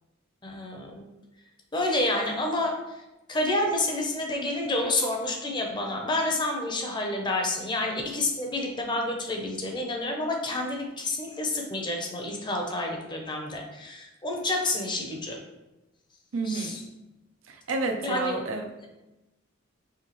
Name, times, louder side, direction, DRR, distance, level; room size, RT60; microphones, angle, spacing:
voice 1, 0.4-1.1 1.7-2.8 3.3-15.4 16.4-16.8 18.0-18.4, left 2 dB, 25° left, 1 dB, 0.6 m, -29 dB
voice 2, 16.3-16.8 17.5-18.6, right 3 dB, 80° right, 4 dB, 0.6 m, -30 dB
4.9 x 3.3 x 3.0 m, 1.0 s
head